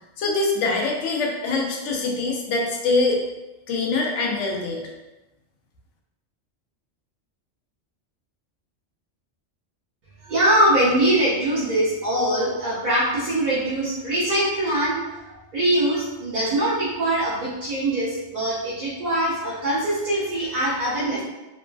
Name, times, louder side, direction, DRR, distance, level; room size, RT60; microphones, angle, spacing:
voice 1, 0.2-3.2 3.7-4.9, left 3 dB, 90° left, 0 dB, 0.9 m, -24 dB
voice 2, 10.2-21.2, right 1 dB, 50° right, -9 dB, 0.6 m, -23 dB
3.1 x 2.3 x 2.2 m, 1.0 s
omnidirectional pair, 1.2 m